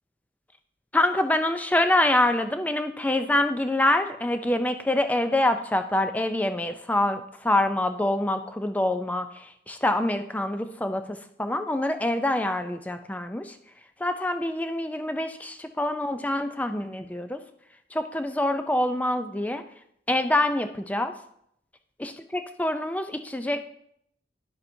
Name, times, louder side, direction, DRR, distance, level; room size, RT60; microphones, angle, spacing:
voice 1, 0.9-13.5 14.0-17.4 17.9-19.6 20.1-21.1 22.0-23.6, left 1 dB, 10° left, 8 dB, 0.4 m, -26 dB
11.0 x 7.0 x 2.7 m, 0.71 s
head